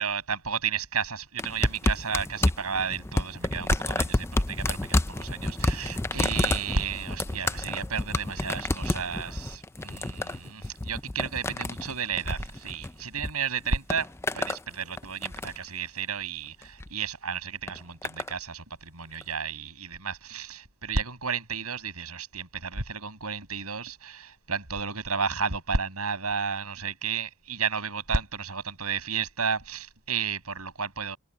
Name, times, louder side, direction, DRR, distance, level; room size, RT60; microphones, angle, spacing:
voice 1, 0.0-14.1 14.3-31.2, right 5 dB, 80° right, 6.0 m, -32 dB
sound 1, 1.4-13.3 13.6-14.6 15.0-15.7 16.6-16.9 17.7-18.3 19.2-19.3, left 2 dB, 10° left, 0.4 m, -30 dB
head